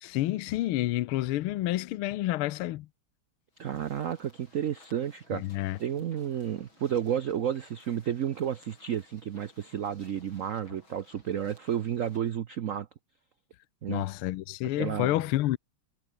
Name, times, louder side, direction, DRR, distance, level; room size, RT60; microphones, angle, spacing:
voice 1, 0.0-2.9 5.3-5.8 13.9-15.6, left 15 dB, 75° left, 1.6 m, -29 dB
sound 1, 3.5-12.3, left 2 dB, 60° left, 8.5 m, -60 dB
voice 2, 3.6-5.4 5.8-12.9 13.8-14.0 14.8-15.2, right 9 dB, 90° right, 0.7 m, -31 dB
omnidirectional pair, 2.4 m